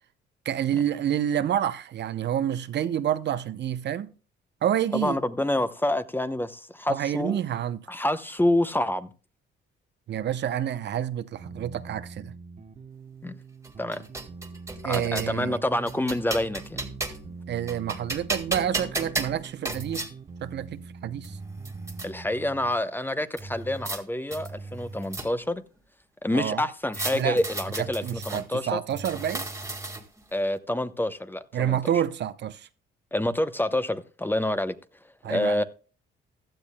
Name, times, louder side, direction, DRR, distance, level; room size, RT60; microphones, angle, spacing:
voice 1, 0.5-4.1 4.6-5.2 6.9-7.9 10.1-12.3 14.8-15.6 17.5-20.1 20.4-21.4 26.3-26.6 27.1-27.4 28.0-29.5 31.5-32.7 35.2-35.6, right 10 dB, 60° right, 0.7 m, -28 dB
voice 2, 4.9-7.4 7.9-9.1 13.2-13.4 13.8-14.0 14.8-16.8 22.0-25.6 26.2-28.8 30.3-31.8 33.1-34.8 35.2-35.6, left 1 dB, 10° left, 0.8 m, -27 dB
sound 1, 11.4-22.8, right 4 dB, 35° right, 1.0 m, -44 dB
sound 2, 13.6-15.4 15.9-17.3 17.7-20.1 20.9-21.0 21.2-22.1 23.4-24.0 24.3-25.6 26.9-28.4 28.9-30.2, right 2 dB, 15° right, 1.8 m, -34 dB
15.5 x 12.0 x 2.2 m
cardioid pair, 90°, 20 cm